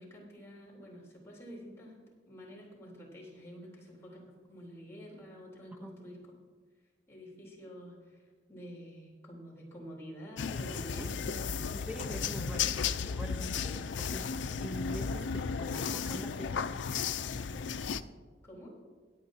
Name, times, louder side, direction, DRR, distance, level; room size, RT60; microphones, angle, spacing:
voice 1, 0.0-2.0 2.3-6.2 7.1-8.2 8.5-11.6 18.4-18.8, equal, 15° left, -5 dB, 3.5 m, -48 dB
sound 1, 10.4-18.0, left 6 dB, 85° left, 0.5 m, -34 dB
voice 2, 11.0-11.4 11.7-16.7, equal, 10° right, 5 dB, 0.9 m, -44 dB
22.0 x 8.4 x 2.8 m, 1.5 s
head